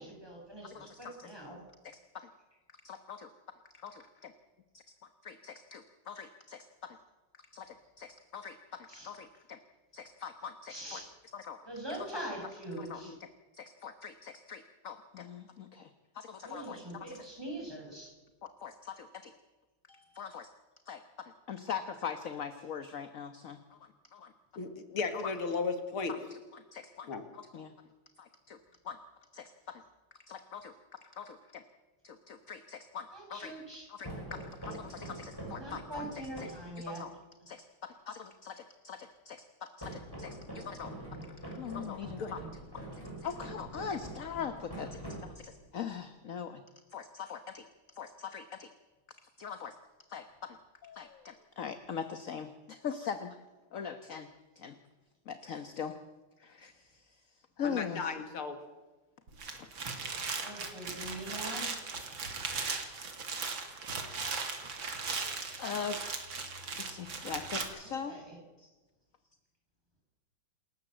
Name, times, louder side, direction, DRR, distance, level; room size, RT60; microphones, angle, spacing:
voice 1, 0.0-1.6 8.9-9.2 10.7-11.1 11.6-13.2 16.4-18.1 33.1-33.9 35.6-37.1 60.4-61.7 67.8-68.4, right 1 dB, 10° right, 0 dB, 7.2 m, -43 dB
voice 2, 0.6-1.3 1.8-2.0 2.8-3.3 3.7-4.3 5.2-7.0 7.5-9.6 9.9-11.0 11.3-11.6 12.1-12.2 12.8-13.1 13.5-16.8 17.1-17.2 18.4-19.3 19.9-20.5 20.9-24.3 25.1-25.3 26.1-27.7 28.2-28.6 28.8-29.0 29.3-29.8 30.3-31.6 32.0-33.5 33.9-36.5 36.8-37.2 37.5-40.9 41.2-42.6 42.9-46.6 46.9-47.6 47.9-48.7 49.1-49.8 50.1-50.6 50.8-53.4 53.7-54.3 54.6-54.8 55.3-55.9 56.4-57.2 57.6-58.1 59.6-59.7 65.2-66.0 66.8-68.2 68.6-68.7, left 7 dB, 45° left, 9 dB, 1.3 m, -42 dB
voice 3, 24.6-26.1 27.1-27.2 42.2-42.3 57.6-58.6, left 4 dB, 90° left, 8 dB, 2.9 m, -35 dB
sound 1, 34.0-36.7 39.8-45.7, right 1 dB, 10° left, 6.7 m, -44 dB
sound 2, 59.3-67.6, right 4 dB, 65° right, 3.3 m, -38 dB
28.0 x 13.5 x 7.8 m, 1.2 s
omnidirectional pair, 2.3 m